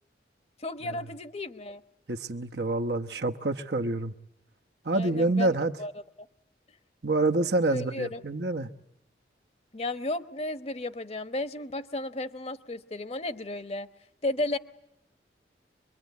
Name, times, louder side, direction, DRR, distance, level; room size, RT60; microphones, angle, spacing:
voice 1, 0.6-1.8 4.9-5.9 7.7-8.2 9.7-13.9 14.2-14.6, left 2 dB, 35° left, 1.1 m, -33 dB
voice 2, 2.1-4.1 4.8-5.7 7.0-8.7, right 2 dB, 70° right, 1.0 m, -27 dB
25.5 x 22.5 x 9.4 m
head